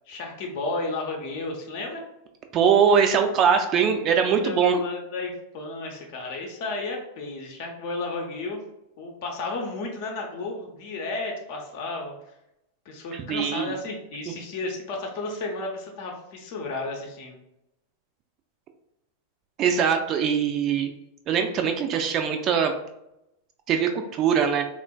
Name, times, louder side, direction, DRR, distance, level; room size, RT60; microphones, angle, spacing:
voice 1, 0.1-2.0 4.2-8.6 9.0-12.1 12.8-17.4, left 3 dB, 50° left, 0 dB, 0.7 m, -33 dB
voice 2, 2.5-4.8 13.1-13.7 14.3-14.4 19.6-20.9 21.3-22.7 23.7-24.6, right 7 dB, 35° right, 5 dB, 0.3 m, -22 dB
3.6 x 2.3 x 2.3 m, 0.86 s
figure-of-eight pair, 90°, 0 cm